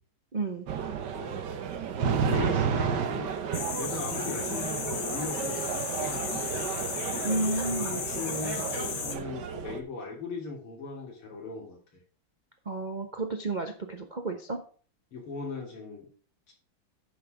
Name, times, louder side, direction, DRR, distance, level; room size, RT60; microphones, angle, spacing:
voice 1, 0.3-0.7 7.2-8.0 12.7-14.6, right 2 dB, 45° right, 4 dB, 0.6 m, -31 dB
sound 1, 0.7-9.8, right 7 dB, 60° right, 1.4 m, -32 dB
voice 2, 1.1-1.5 2.1-3.3 3.7-6.7 7.7-11.8 15.1-16.0 16.5-16.6, left 4 dB, 80° left, 0 dB, 3.8 m, -38 dB
sound 2, 3.5-9.2, left 7 dB, 60° left, 1.7 m, -35 dB
9.4 x 6.1 x 5.0 m, 0.42 s
omnidirectional pair, 2.3 m